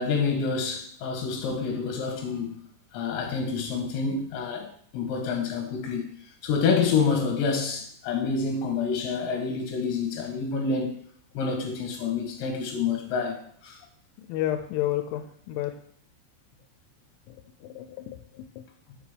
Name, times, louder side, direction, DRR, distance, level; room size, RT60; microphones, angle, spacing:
voice 1, 0.0-2.6 2.9-4.7 4.9-6.1 6.4-11.0 11.4-13.8, left 5 dB, 70° left, 3.6 m, -28 dB
voice 2, 14.2-15.7 17.3-17.4 17.6-18.7, left 13 dB, 90° left, 3.1 m, -31 dB
7.0 x 5.0 x 5.2 m
omnidirectional pair, 5.5 m